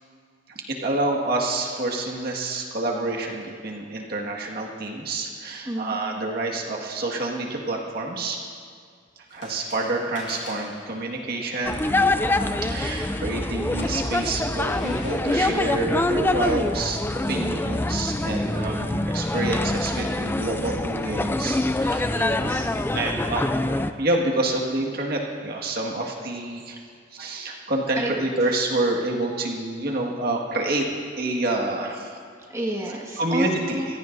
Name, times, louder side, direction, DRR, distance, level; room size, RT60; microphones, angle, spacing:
voice 1, 0.5-8.4 9.3-11.8 12.6-17.0 17.3-22.2 22.9-26.8 27.1-30.9 31.2-32.2 33.2-34.0, right 2 dB, 60° right, -1 dB, 1.9 m, -28 dB
voice 2, 5.7-6.0 22.1-22.7 27.9-28.1 28.4-28.5 32.5-33.9, right 1 dB, 15° right, -2 dB, 1.7 m, -29 dB
sound 1, 9.3-18.5, left 2 dB, 85° left, 4.3 m, -45 dB
sound 2, 11.6-23.9, left 2 dB, 10° left, 0.4 m, -25 dB
25.0 x 17.0 x 2.7 m, 2.1 s
head